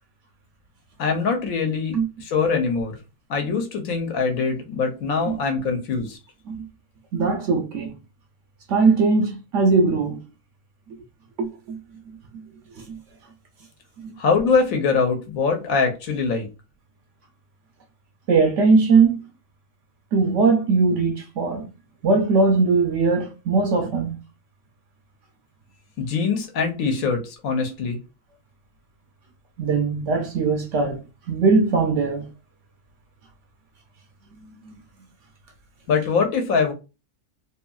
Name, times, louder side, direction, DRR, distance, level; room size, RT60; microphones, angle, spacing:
voice 1, 1.0-2.9 3.3-6.2 14.2-16.5 26.0-28.0 35.9-36.7, left 5 dB, 70° left, 1.1 m, -23 dB
voice 2, 7.1-8.0 8.7-10.2 11.4-11.8 12.9-13.0 14.0-14.1 18.3-19.2 20.1-21.7 22.0-24.2 29.6-31.0 31.3-32.3 34.7-34.8, right 4 dB, 65° right, 0.8 m, -20 dB
3.0 x 2.6 x 2.3 m
omnidirectional pair, 1.6 m